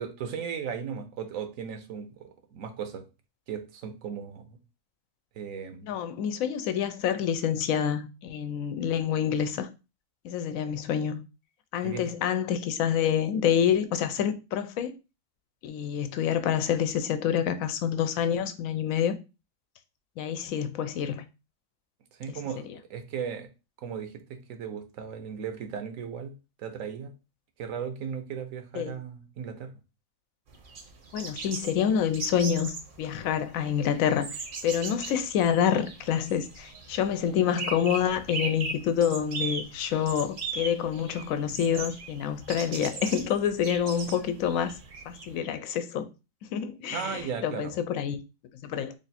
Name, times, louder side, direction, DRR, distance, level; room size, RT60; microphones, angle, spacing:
voice 1, 0.0-3.0 3.5-4.6 5.3-5.9 11.8-12.1 22.2-23.5 23.8-26.3 26.6-27.1 27.6-29.7 46.9-47.7, right 7 dB, 80° right, 1.1 m, -36 dB
voice 2, 5.8-9.7 10.2-11.2 11.7-14.9 15.6-19.1 20.2-21.2 22.3-22.4 28.7-28.9 31.1-34.3 34.6-44.7 45.1-46.1 46.5-48.2 48.6-48.9, left 8 dB, 90° left, 1.0 m, -27 dB
sound 1, 30.5-45.4, right 4 dB, 50° right, 0.7 m, -39 dB
3.3 x 2.5 x 4.1 m
omnidirectional pair, 1.4 m